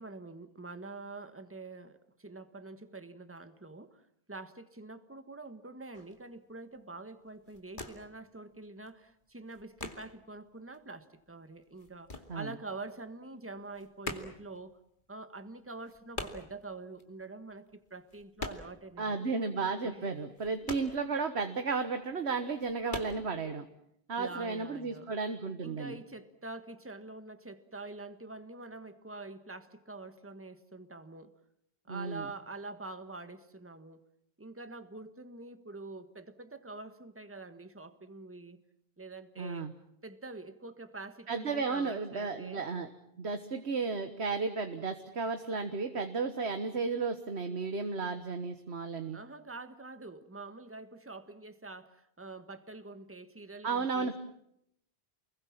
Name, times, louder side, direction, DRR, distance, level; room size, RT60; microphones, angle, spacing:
voice 1, 0.0-4.0 4.3-14.8 15.1-19.2 19.8-20.1 24.2-25.1 25.6-31.3 31.8-34.0 34.4-38.6 39.0-39.7 40.0-42.7 49.1-54.2, right 3 dB, 10° right, 10 dB, 1.5 m, -46 dB
sound 1, 5.9-6.2 6.7-7.0 7.3-8.2 8.5-10.4 10.7-13.0 13.2-18.9 19.2-19.3 19.7-21.6 22.0-22.1 22.5-23.2, left 2 dB, 50° left, 2.7 m, -43 dB
voice 2, 19.0-23.7 24.1-26.0 31.9-32.3 39.4-39.7 41.3-42.9 43.2-49.2 53.6-54.2, right 4 dB, 85° right, 8 dB, 1.7 m, -33 dB
29.0 x 21.5 x 7.4 m, 0.73 s
omnidirectional pair, 1.1 m